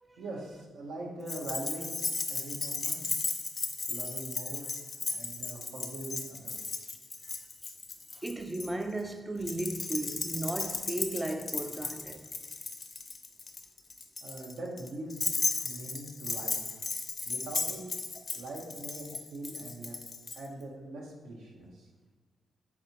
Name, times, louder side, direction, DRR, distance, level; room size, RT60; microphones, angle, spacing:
voice 1, 0.2-1.9 2.3-3.2 3.9-4.8 5.1-6.9 7.2-7.4 14.2-15.4 15.6-16.8 17.2-17.8 18.3-20.0 20.3-21.9, right 2 dB, 85° right, 0.8 m, -42 dB
Keys jangling, 1.3-8.7 9.4-20.4, left 4 dB, 40° left, 0.4 m, -35 dB
voice 2, 8.1-12.3 18.2-18.3, right 1 dB, 20° right, 0.3 m, -35 dB
4.1 x 3.5 x 2.8 m
cardioid pair, 70°, 0 cm